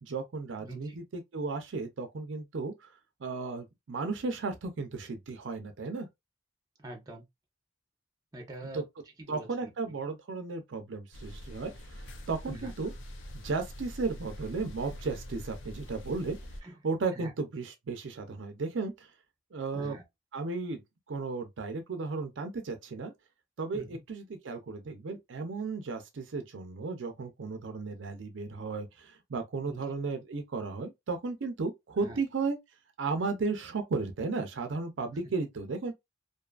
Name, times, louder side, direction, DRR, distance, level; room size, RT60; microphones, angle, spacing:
voice 1, 0.0-2.9 3.2-6.1 8.7-8.8 9.3-12.9 13.4-16.4 16.8-19.1 19.5-20.0 20.3-20.8 21.1-23.1 23.6-32.6 33.0-35.9, right 4 dB, 75° right, 0.5 m, -34 dB
voice 2, 0.6-1.0 6.8-7.2 8.3-8.8 9.2-9.9 12.5-12.7 16.6-16.7 17.1-17.3 19.7-20.0 23.7-24.0 29.6-29.8 32.0-32.2 35.2-35.3, right 1 dB, 20° right, 0.7 m, -44 dB
sound 1, 11.1-16.6, equal, 70° left, 0.5 m, -44 dB
2.6 x 2.4 x 2.3 m
head